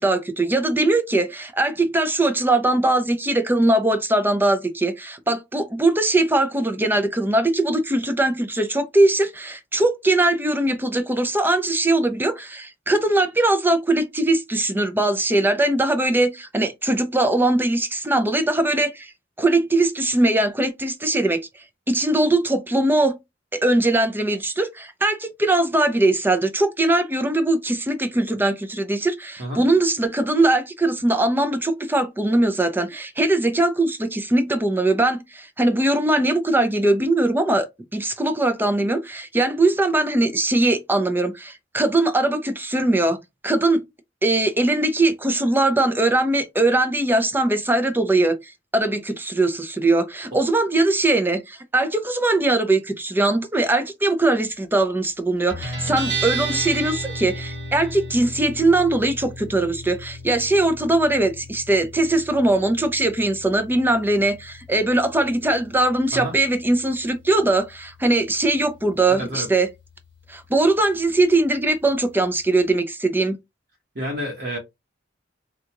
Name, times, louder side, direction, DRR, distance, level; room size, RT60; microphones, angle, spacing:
voice 1, 0.0-19.1 19.4-21.4 21.9-23.2 23.5-37.7 37.9-43.8 44.2-69.7 70.3-73.4, right 2 dB, 10° right, 0.5 m, -21 dB
Guitar, 55.5-72.7, right 2 dB, 75° right, 2.0 m, -36 dB
voice 2, 69.1-69.5 73.9-74.6, equal, 60° right, 1.3 m, -29 dB
3.6 x 2.4 x 2.9 m
head